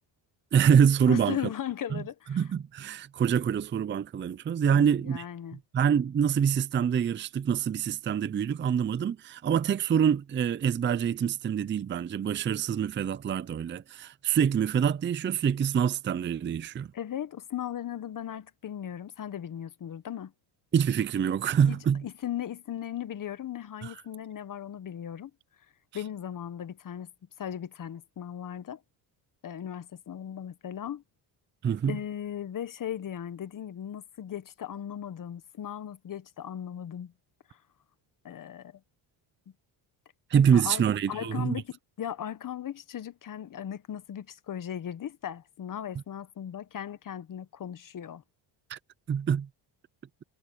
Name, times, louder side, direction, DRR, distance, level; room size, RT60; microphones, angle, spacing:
voice 1, 0.5-1.4 1.9-2.0 2.3-5.2 5.7-16.9 20.7-22.0 23.8-23.9 31.6-32.0 40.3-41.6 48.7-48.8 49.1-49.5, right 8 dB, 25° right, 0.5 m, -25 dB
voice 2, 1.1-2.5 4.7-5.6 16.9-20.3 21.7-25.3 25.9-27.1 27.4-28.8 29.4-31.0 31.9-37.1 37.5-37.6 38.2-38.8 40.5-48.2, left 10 dB, 45° left, 1.4 m, -37 dB
cardioid pair, 105°, 45 cm